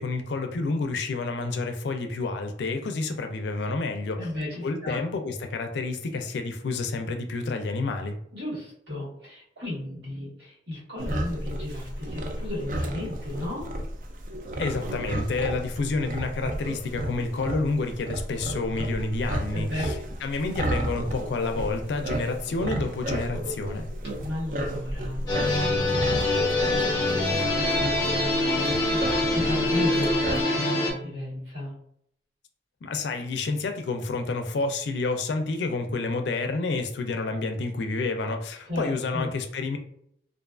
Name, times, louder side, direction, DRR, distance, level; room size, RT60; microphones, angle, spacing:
voice 1, 0.0-4.2 4.6-8.2 14.6-19.9 20.2-23.9 32.8-39.8, left 3 dB, 80° left, 6 dB, 0.4 m, -29 dB
voice 2, 4.2-5.0 8.3-13.7 19.5-20.0 24.2-31.7 38.6-39.3, left 1 dB, 80° right, -6 dB, 1.4 m, -34 dB
sound 1, 11.0-30.4, right 1 dB, 45° right, 0.3 m, -33 dB
sound 2, 25.3-30.9, left 2 dB, 20° left, 0.5 m, -24 dB
2.4 x 2.3 x 2.3 m, 0.70 s
head